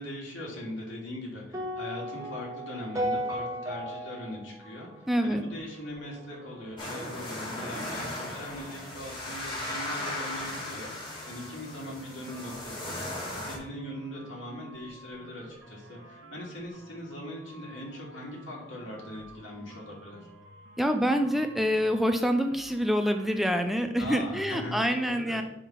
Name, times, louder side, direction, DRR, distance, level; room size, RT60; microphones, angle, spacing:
voice 1, 0.0-20.3 24.0-25.4, left 1 dB, 75° left, -3 dB, 2.5 m, -40 dB
sound 1, 1.5-5.8, equal, 15° right, 1.1 m, -35 dB
voice 2, 5.1-5.4 20.8-25.4, equal, ahead, 6 dB, 0.4 m, -26 dB
sound 2, 5.3-23.6, right 1 dB, 70° right, 1.4 m, -52 dB
sound 3, 6.8-13.6, left 1 dB, 25° left, 2.2 m, -37 dB
7.5 x 3.6 x 5.7 m, 0.84 s
head